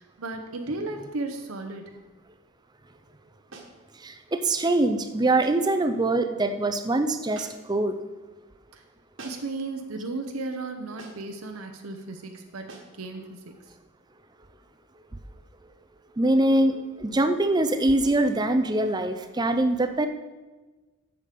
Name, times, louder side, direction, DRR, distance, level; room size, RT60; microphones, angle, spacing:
voice 1, 0.0-1.9 8.7-8.8 9.2-13.6, right 2 dB, 75° right, 4 dB, 0.8 m, -35 dB
sound 1, 3.5-3.8 5.4-5.7 7.3-7.8 9.2-9.6 11.0-11.3 12.7-13.0, right 3 dB, 60° right, 1.4 m, -45 dB
voice 2, 4.0-8.0 16.2-20.1, right 2 dB, 20° right, 9 dB, 0.4 m, -23 dB
8.3 x 7.1 x 5.1 m, 1.2 s
head